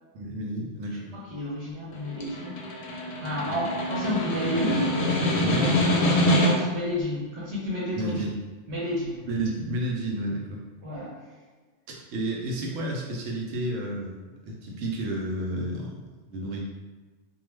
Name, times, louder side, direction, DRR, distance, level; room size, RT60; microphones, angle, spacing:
voice 1, 0.1-1.1 3.5-3.6 5.4-5.7 8.0-8.3 9.3-10.6 11.9-16.0 16.3-16.6, right 1 dB, 90° right, -1 dB, 1.0 m, -31 dB
voice 2, 0.9-8.3 8.7-9.2 10.8-11.3, equal, 65° right, -8 dB, 1.1 m, -32 dB
Snare drum, 1.9-6.8, left 1 dB, 60° left, 0.7 m, -25 dB
2.3 x 2.3 x 3.1 m, 1.3 s
omnidirectional pair, 1.2 m